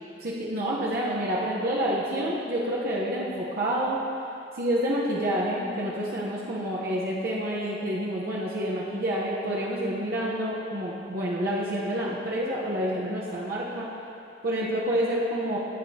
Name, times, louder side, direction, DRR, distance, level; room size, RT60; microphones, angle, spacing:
voice 1, 0.2-4.0 4.6-13.9 14.4-15.6, equal, 60° right, -6 dB, 1.0 m, -28 dB
12.5 x 8.5 x 2.9 m, 2.7 s
head